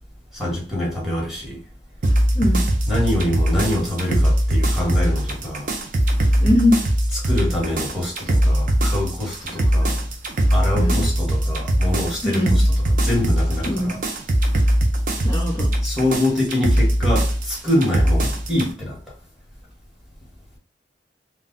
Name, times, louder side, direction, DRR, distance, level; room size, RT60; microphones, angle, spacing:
voice 1, 0.3-1.6 2.9-5.7 7.2-10.0 10.5-12.6 13.0-14.0 15.8-19.0, left 1 dB, ahead, 1.0 m, -25 dB
sound 1, 2.0-18.7, right 1 dB, 45° right, 0.5 m, -20 dB
voice 2, 6.4-6.8 10.7-11.0 12.2-12.6 13.6-14.0 15.2-15.7, left 1 dB, 20° left, 0.5 m, -20 dB
2.2 x 2.1 x 3.6 m
head